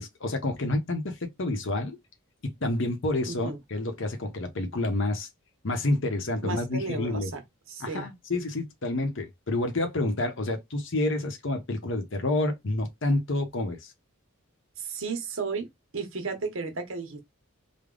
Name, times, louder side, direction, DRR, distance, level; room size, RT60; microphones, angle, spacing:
voice 1, 0.0-2.0 2.4-5.3 5.6-7.3 7.8-13.9, left 2 dB, 60° left, 0.9 m, -29 dB
voice 2, 3.3-3.6 6.4-7.4 7.7-8.1 14.8-15.7 15.9-17.2, right 4 dB, 65° right, 0.9 m, -33 dB
3.4 x 2.2 x 3.7 m
head